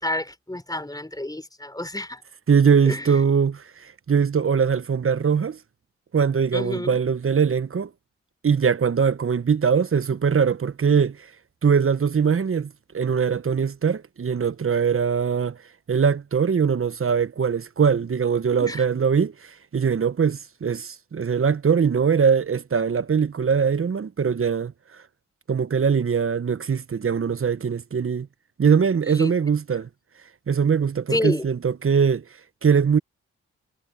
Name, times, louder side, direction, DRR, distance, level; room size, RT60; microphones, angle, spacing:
voice 1, 0.0-2.2 2.9-3.1 6.5-7.0 18.6-18.8 29.1-29.3 31.1-31.4, left 1 dB, 10° left, 4.2 m, -29 dB
voice 2, 2.5-5.6 6.1-7.9 8.4-11.3 11.6-15.6 15.9-24.7 25.5-28.3 28.6-29.9 30.5-32.2 32.6-33.0, right 6 dB, 45° right, 1.1 m, -21 dB
supercardioid pair, 40°, 31 cm